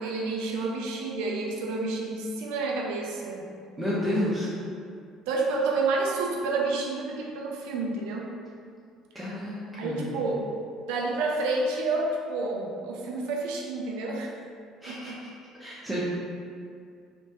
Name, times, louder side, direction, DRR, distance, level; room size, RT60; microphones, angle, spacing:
voice 1, 0.0-3.5 5.3-8.3 9.7-10.5 10.9-14.3 14.9-15.2, right 3 dB, 65° right, -1 dB, 0.4 m, -29 dB
voice 2, 3.8-4.5 9.1-10.1 14.8-15.1 15.6-16.0, left 1 dB, 10° right, -10 dB, 0.8 m, -30 dB
3.1 x 2.5 x 2.9 m, 2.3 s
figure-of-eight pair, 55°, 0 cm